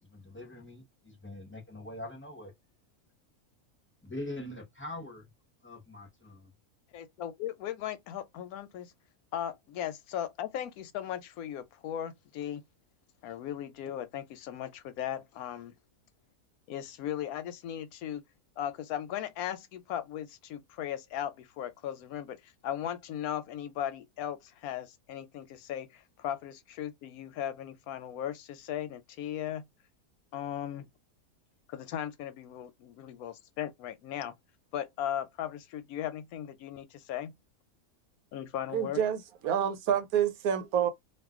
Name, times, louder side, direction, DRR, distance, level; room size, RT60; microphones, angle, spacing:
voice 1, 0.0-2.5 4.0-5.3 5.6-6.4, left 1 dB, 10° left, 0.6 m, -43 dB
voice 2, 6.9-8.9 9.3-12.6 13.2-15.7 16.7-18.2 18.6-29.6 30.3-30.9 31.7-34.3 34.7-37.3 38.3-39.0, left 10 dB, 90° left, 1.1 m, -37 dB
voice 3, 38.7-40.9, right 9 dB, 85° right, 1.2 m, -28 dB
2.5 x 2.3 x 3.5 m
omnidirectional pair, 1.5 m